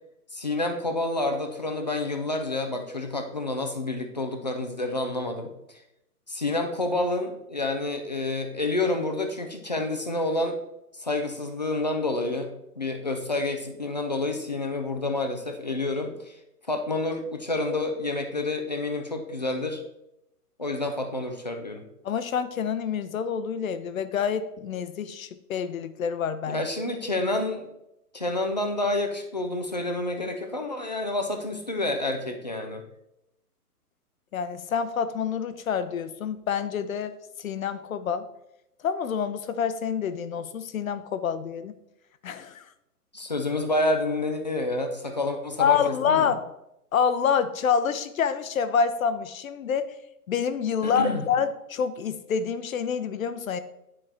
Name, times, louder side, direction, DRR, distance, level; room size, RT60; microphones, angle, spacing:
voice 1, 0.3-5.5 6.3-10.6 10.9-12.5 12.8-16.4 16.7-19.8 20.6-21.9 26.5-27.7 28.1-32.8 43.1-46.3 50.8-51.3, left 2 dB, 30° left, 5 dB, 0.4 m, -29 dB
voice 2, 22.0-26.6 34.3-38.3 38.8-41.7 42.2-42.6 45.6-46.4 46.9-49.9 50.3-53.6, left 7 dB, 60° left, 11 dB, 0.7 m, -27 dB
9.8 x 4.4 x 3.3 m, 0.85 s
hypercardioid pair, 160°, 47 cm